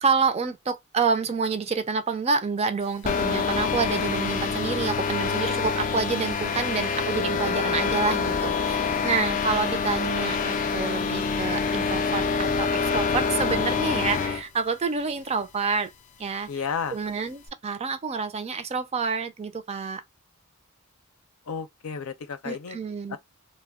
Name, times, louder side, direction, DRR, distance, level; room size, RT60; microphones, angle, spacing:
voice 1, 0.0-15.9 16.2-16.5 16.9-20.0 22.4-23.2, right 5 dB, 30° right, 0.4 m, -28 dB
sound 1, 3.0-14.4, left 5 dB, 40° left, 0.3 m, -26 dB
voice 2, 16.5-17.0 21.5-22.8 23.1-23.2, left 6 dB, 85° left, 0.5 m, -32 dB
2.3 x 2.1 x 3.4 m
head